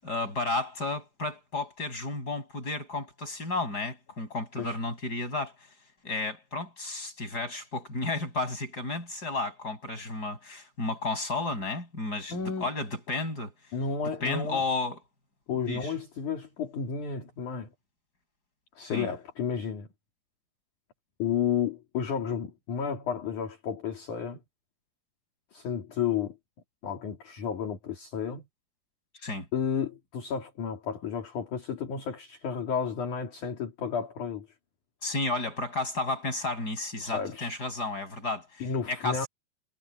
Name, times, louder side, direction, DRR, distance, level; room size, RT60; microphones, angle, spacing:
voice 1, 0.0-5.5 6.0-13.5 14.2-15.0 15.7-15.9 18.8-19.1 29.2-29.5 35.0-39.3, left 2 dB, 20° left, 8.4 m, -32 dB
voice 2, 12.3-12.7 13.7-14.6 15.5-17.7 18.8-19.9 21.2-24.4 25.5-26.4 26.8-28.4 29.5-34.5 37.0-37.5 38.6-39.3, left 7 dB, 50° left, 4.1 m, -32 dB
omnidirectional pair, 4.9 m